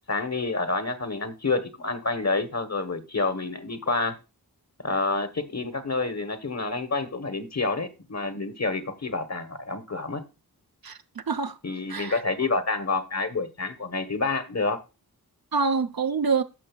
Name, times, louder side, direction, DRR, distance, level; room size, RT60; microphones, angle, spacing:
voice 1, 0.1-4.2 4.8-10.2 11.6-14.8, left 3 dB, 45° left, 1.0 m, -28 dB
voice 2, 10.8-11.6 11.9-12.1 15.5-16.4, right 4 dB, 70° right, 0.6 m, -26 dB
14.0 x 6.2 x 2.3 m
wide cardioid pair, 40°, 38 cm